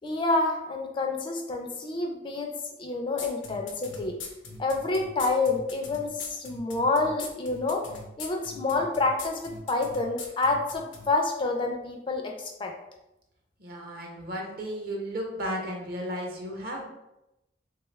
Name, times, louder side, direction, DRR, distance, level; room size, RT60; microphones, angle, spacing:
voice 1, 0.0-2.5 2.8-4.2 4.6-7.9 8.2-12.7, left 3 dB, 25° left, 2 dB, 0.3 m, -28 dB
sound 1, 3.2-11.0, left 4 dB, 90° left, 0.6 m, -41 dB
voice 2, 13.6-16.9, equal, 55° right, -1 dB, 0.7 m, -34 dB
3.3 x 2.3 x 3.1 m, 0.91 s
head